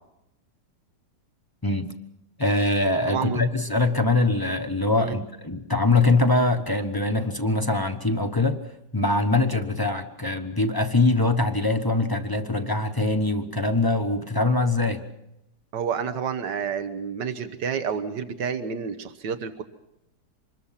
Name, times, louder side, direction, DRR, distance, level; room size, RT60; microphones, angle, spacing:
voice 1, 2.4-8.6 8.9-15.0, left 2 dB, 15° left, 6 dB, 0.8 m, -23 dB
voice 2, 3.1-3.4 5.0-5.2 15.7-19.6, right 7 dB, 80° right, 9 dB, 1.8 m, -29 dB
26.0 x 21.0 x 5.8 m, 0.86 s
omnidirectional pair, 1.8 m